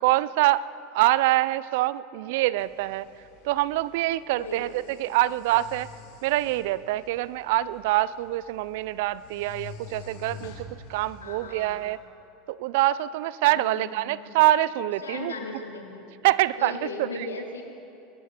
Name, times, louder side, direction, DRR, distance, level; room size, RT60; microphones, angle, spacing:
voice 1, 0.0-3.1 3.4-5.9 6.2-12.0 12.5-15.3 16.2-17.3, right 16 dB, 65° right, 19 dB, 0.4 m, -25 dB
sound 1, 2.6-12.0, left 5 dB, 60° left, 2.1 m, -47 dB
voice 2, 4.4-4.7 11.2-11.8 13.5-14.2 15.0-16.1 16.6-17.6, left 3 dB, 90° left, 2 dB, 1.9 m, -37 dB
19.5 x 14.0 x 4.4 m, 2.9 s
hypercardioid pair, 85°, 0 cm